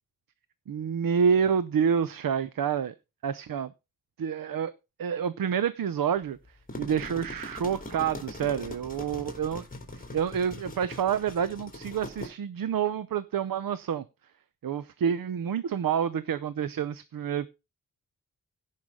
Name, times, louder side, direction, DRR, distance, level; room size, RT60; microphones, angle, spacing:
voice 1, 0.7-2.9 3.2-3.7 4.2-4.7 5.0-6.4 6.8-9.6 9.9-14.0 14.6-17.5, right 7 dB, 75° right, 0.7 m, -28 dB
sound 1, 6.5-12.3, left 1 dB, 25° left, 3.4 m, -41 dB
17.0 x 5.7 x 3.7 m
wide cardioid pair, 110°, 35 cm